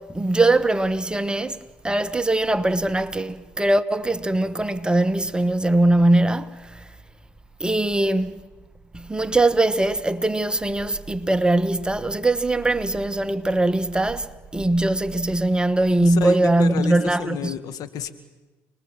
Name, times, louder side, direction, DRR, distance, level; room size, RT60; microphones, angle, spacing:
voice 1, 0.0-1.6 1.8-6.8 7.6-8.4 8.9-17.5, right 2 dB, 10° right, 1.1 m, -21 dB
voice 2, 16.0-18.1, left 7 dB, 60° left, 1.9 m, -30 dB
29.5 x 20.5 x 7.4 m
hypercardioid pair, 65°, 7 cm